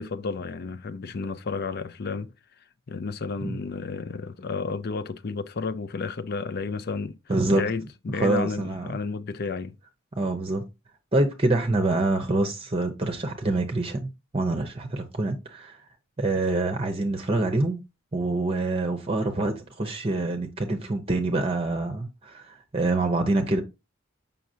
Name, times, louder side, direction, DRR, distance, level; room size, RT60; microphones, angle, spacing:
voice 1, 0.0-2.3 2.9-7.1 7.5-9.7, left 4 dB, 45° left, 0.4 m, -32 dB
voice 2, 7.3-7.6 8.1-8.9 10.1-10.6 11.1-15.8 16.2-17.8 18.1-23.6, right 2 dB, 25° right, 0.7 m, -26 dB
7.4 x 5.6 x 2.7 m
head